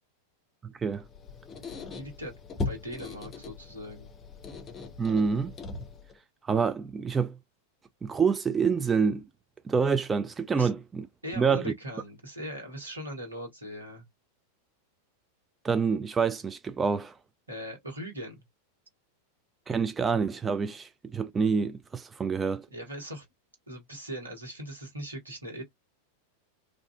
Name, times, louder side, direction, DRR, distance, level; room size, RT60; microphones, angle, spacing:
voice 1, 0.6-1.1 5.0-5.5 6.5-7.4 8.0-9.2 9.7-11.1 11.4-11.7 15.6-17.1 19.7-22.7, right 5 dB, 15° right, 0.3 m, -27 dB
Squeak, 0.9-6.2, left 3 dB, 25° left, 0.6 m, -39 dB
voice 2, 1.9-2.3 2.6-4.1 10.5-10.7 11.2-14.0 17.5-18.4 22.7-23.3 23.7-25.6, equal, 80° right, 1.4 m, -40 dB
2.5 x 2.5 x 2.2 m
figure-of-eight pair, 90°, 0 cm